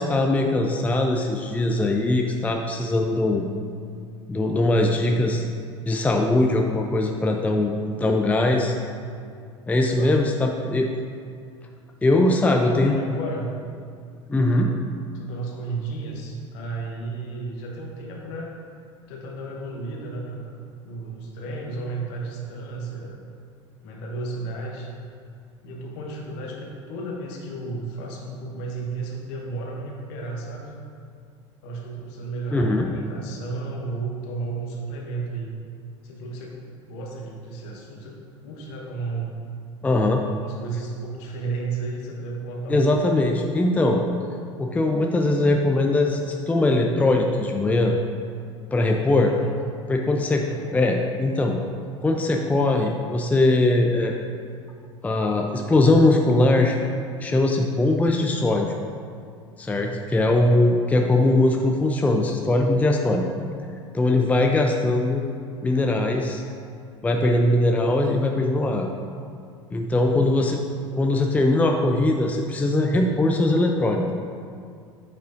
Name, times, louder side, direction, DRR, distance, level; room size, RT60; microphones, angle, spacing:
voice 1, 0.0-3.5 4.3-5.4 5.9-7.7 8.0-8.8 9.7-10.9 12.0-13.0 14.3-14.7 32.5-32.9 39.8-40.2 42.7-44.0 44.6-47.9 48.7-49.3 49.9-51.6 52.0-54.2 55.0-56.8 57.2-58.7 59.6-63.2 63.9-65.2 65.6-66.4 67.0-68.9 69.7-70.6 70.9-74.1, left 2 dB, 10° left, 2 dB, 0.5 m, -21 dB
voice 2, 9.8-10.7 12.2-13.5 15.1-18.5 19.1-20.6 20.8-23.2 23.8-24.9 25.6-30.7 31.6-35.6 36.0-36.6 36.9-38.2 38.4-39.4 40.1-43.0 49.2-49.5 50.4-50.7 59.7-60.0, right 3 dB, 60° left, -1 dB, 1.1 m, -33 dB
8.6 x 5.5 x 2.6 m, 2.3 s
figure-of-eight pair, 70°, 16 cm